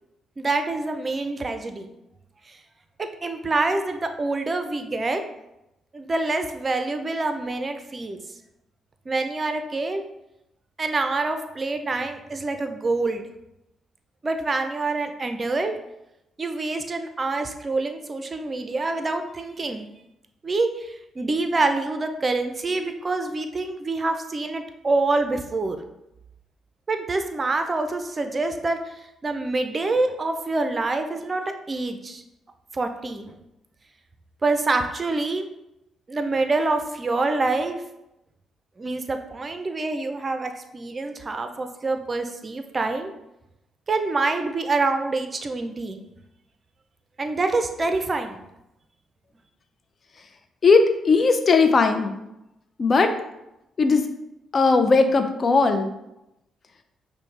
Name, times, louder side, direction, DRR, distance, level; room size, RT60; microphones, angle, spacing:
voice 1, 0.4-1.9 2.5-2.6 3.0-5.2 5.9-8.2 9.1-10.0 10.8-13.3 14.2-15.8 16.4-19.9 20.4-25.8 26.9-28.9 29.2-32.2 32.7-33.4 34.4-35.4 36.1-37.8 38.8-43.1 43.9-46.0 47.2-48.4, right 3 dB, 35° right, 7 dB, 0.5 m, -26 dB
voice 2, 50.6-52.1 52.8-53.1 53.8-54.0 54.5-55.9, left 4 dB, 45° left, 7 dB, 0.5 m, -18 dB
5.2 x 2.2 x 3.2 m, 0.88 s
hypercardioid pair, 50°, 0 cm